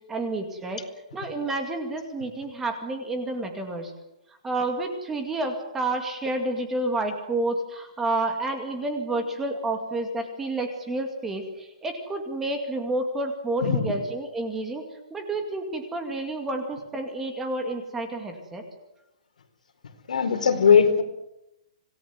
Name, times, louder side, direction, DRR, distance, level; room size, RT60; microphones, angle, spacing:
voice 1, 0.1-0.8 1.1-3.9 4.4-14.8 15.1-18.6, right 2 dB, 5° right, 5 dB, 2.2 m, -29 dB
voice 2, 20.1-21.0, left 6 dB, 80° left, 6 dB, 4.4 m, -19 dB
26.0 x 18.5 x 9.4 m, 0.87 s
hypercardioid pair, 180°, 4 cm